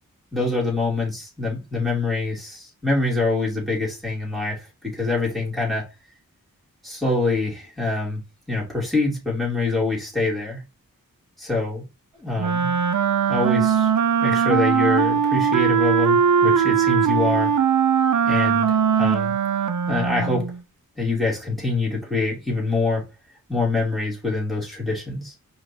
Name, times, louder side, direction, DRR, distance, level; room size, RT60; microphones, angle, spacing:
voice 1, 0.3-5.8 6.8-8.2 8.5-10.6 11.4-11.8 12.2-12.8 13.3-13.9 14.2-17.5 18.3-19.3 19.9-20.5 21.0-23.0 23.5-25.3, left 3 dB, ahead, 2.8 m, -25 dB
Wind instrument woodwind instrument, 12.4-20.6, right 7 dB, 60° right, 0.5 m, -20 dB
4.9 x 3.0 x 2.7 m
wide cardioid pair, 55°, 35 cm